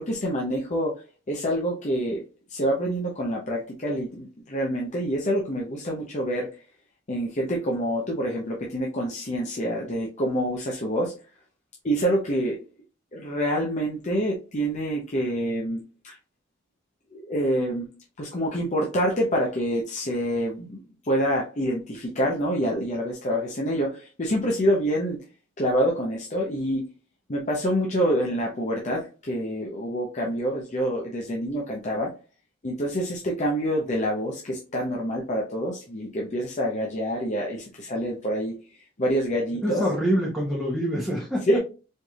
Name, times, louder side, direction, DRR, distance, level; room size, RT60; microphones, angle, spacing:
voice 1, 0.0-2.2 2.5-6.5 7.1-11.1 11.8-12.6 13.1-16.2 17.1-17.9 18.2-25.2 25.6-26.9 27.3-32.1 32.6-39.8 41.5-41.6, equal, 40° left, -2 dB, 0.7 m, -27 dB
voice 2, 39.6-41.4, equal, ahead, -4 dB, 1.0 m, -25 dB
4.4 x 3.3 x 2.3 m, 0.32 s
head